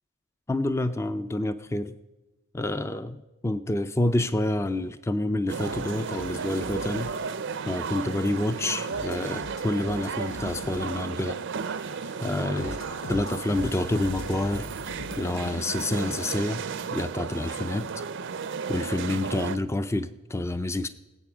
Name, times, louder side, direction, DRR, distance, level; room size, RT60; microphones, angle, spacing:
voice 1, 0.5-1.9 2.5-7.1 7.7-11.4 12.2-12.8 13.1-14.7 15.2-16.6 16.9-17.9 18.7-20.9, left 1 dB, 15° left, 12 dB, 0.4 m, -28 dB
sound 1, 5.5-19.6, right 5 dB, 60° right, 0.5 m, -34 dB
sound 2, 5.6-17.6, left 4 dB, 75° left, 0.5 m, -43 dB
19.5 x 8.4 x 6.0 m, 1.0 s
head